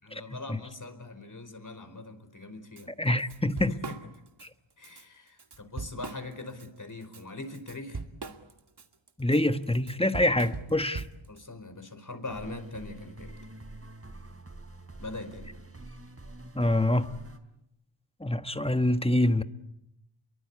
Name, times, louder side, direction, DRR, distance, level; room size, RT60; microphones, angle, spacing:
voice 1, 0.0-2.9 3.7-4.0 4.8-8.0 11.3-13.4 15.0-15.5, left 2 dB, 40° left, 5.0 m, -42 dB
Drum kit / Drum, 2.8-2.9 3.2-4.5 4.8-5.0 5.4-6.7 7.0-11.4, right 4 dB, 55° right, 2.2 m, -40 dB
voice 2, 3.0-3.8 4.4-4.5 9.2-11.0 16.5-17.1 18.2-19.4, left 1 dB, 10° left, 1.4 m, -25 dB
sound 1, 12.2-17.4, right 2 dB, 30° right, 4.1 m, -46 dB
29.5 x 23.0 x 8.6 m
wide cardioid pair, 70°, 48 cm